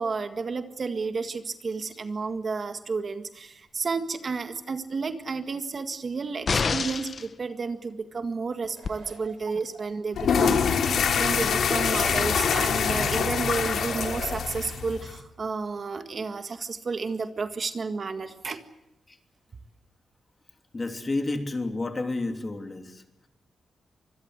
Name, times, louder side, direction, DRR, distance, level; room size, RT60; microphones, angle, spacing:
voice 1, 0.0-10.8 11.2-18.6, right 4 dB, 45° right, 8 dB, 1.8 m, -31 dB
sound 1, 6.5-7.3 8.8-8.9, left 5 dB, 45° left, 1.0 m, -26 dB
sound 2, 8.7-9.8 10.2-10.3 12.1-13.2 13.6-14.5, right 5 dB, 85° right, 6.1 m, -42 dB
sound 3, 10.1-15.2, left 6 dB, 80° left, 2.9 m, -25 dB
voice 2, 20.7-23.3, left 2 dB, 25° left, 6 dB, 3.0 m, -31 dB
25.5 x 21.0 x 8.1 m, 0.89 s
wide cardioid pair, 115°, 0 cm